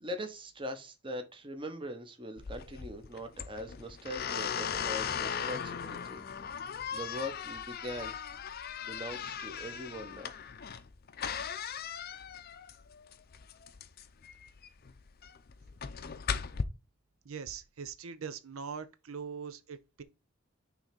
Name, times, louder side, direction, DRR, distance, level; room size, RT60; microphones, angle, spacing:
voice 1, 0.0-6.2 6.9-8.1 8.8-10.3, equal, 25° right, 1.0 m, -41 dB
sound 1, 2.4-16.6, left 7 dB, 50° left, 0.5 m, -38 dB
voice 2, 17.2-20.0, right 6 dB, 90° right, 0.7 m, -42 dB
6.1 x 3.3 x 5.2 m
head